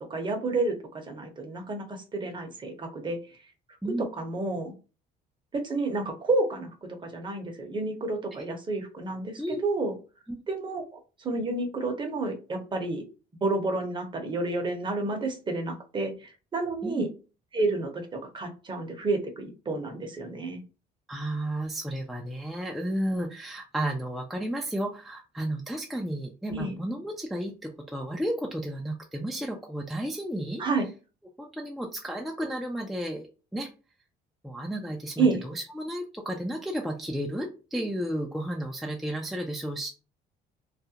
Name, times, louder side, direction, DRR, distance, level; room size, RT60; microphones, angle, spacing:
voice 1, 0.1-3.4 4.0-4.7 5.5-10.0 10.5-13.0 13.4-17.1 17.5-20.6 26.5-26.7 30.6-30.9 35.2-35.4, right 3 dB, 30° right, 4 dB, 0.7 m, -30 dB
voice 2, 21.1-30.6 31.4-33.3 33.5-33.7 34.4-39.9, right 1 dB, ahead, 0 dB, 0.4 m, -33 dB
2.4 x 2.0 x 2.7 m, 0.33 s
cardioid pair, 110°, 17 cm